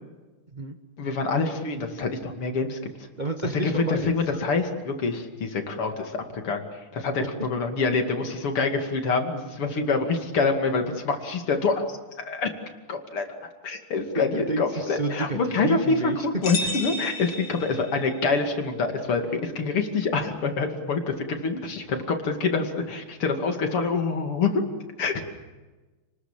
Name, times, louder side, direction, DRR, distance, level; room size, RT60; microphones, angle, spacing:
voice 1, 1.0-2.8 3.6-12.0 12.2-12.5 12.9-13.2 13.6-16.1 16.4-24.6 25.0-25.2, left 4 dB, 90° left, 5 dB, 3.4 m, -26 dB
voice 2, 3.2-4.4 7.2-7.3 14.3-16.4, right 2 dB, 25° right, 5 dB, 1.3 m, -30 dB
sound 1, 16.4-18.2, left 2 dB, 55° left, 3.1 m, -32 dB
29.5 x 20.5 x 7.5 m, 1.2 s
omnidirectional pair, 2.4 m